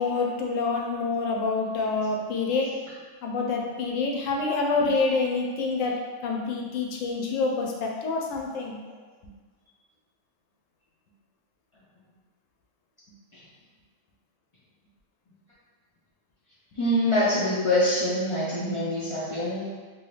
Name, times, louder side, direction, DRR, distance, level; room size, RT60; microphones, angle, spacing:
voice 1, 0.0-2.8 3.2-8.8, left 4 dB, 90° left, 0 dB, 1.0 m, -27 dB
voice 2, 16.7-19.6, left 1 dB, 50° left, -9 dB, 0.4 m, -25 dB
2.9 x 2.9 x 3.1 m, 1.4 s
omnidirectional pair, 1.3 m